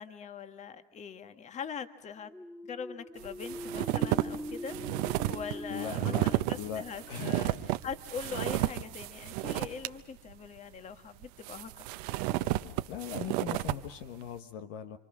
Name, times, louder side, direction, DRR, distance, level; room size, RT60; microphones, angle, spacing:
voice 1, 0.0-2.3 2.7-11.9 12.3-12.4, left 6 dB, 35° left, 9 dB, 1.7 m, -42 dB
sound 1, 2.2-7.8, equal, 5° left, 2.4 m, -43 dB
sound 2, 3.2-9.9 10.3-10.4 11.2-13.8, right 17 dB, 65° right, 1.0 m, -32 dB
voice 2, 5.7-6.3 6.6-7.5 12.9-15.0, left 9 dB, 65° left, 8 dB, 1.4 m, -40 dB
28.0 x 25.0 x 6.2 m, 1.0 s
hypercardioid pair, 95°, 21 cm